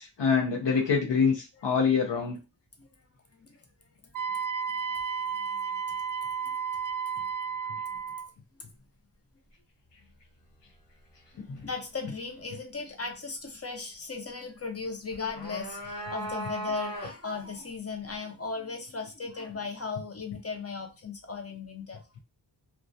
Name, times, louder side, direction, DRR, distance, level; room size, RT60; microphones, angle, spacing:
voice 1, 0.0-2.4 11.4-11.5, left 5 dB, 75° left, 1 dB, 0.6 m, -25 dB
Wind instrument woodwind instrument, 4.1-8.3, right 6 dB, 50° right, 0.4 m, -32 dB
voice 2, 5.4-5.8 7.9-8.0 11.5-22.0, left 4 dB, 35° left, 3 dB, 0.6 m, -37 dB
sound 1, 15.1-17.4, right 1 dB, 50° left, 1.0 m, -37 dB
2.2 x 2.2 x 2.6 m, 0.27 s
wide cardioid pair, 65°, 43 cm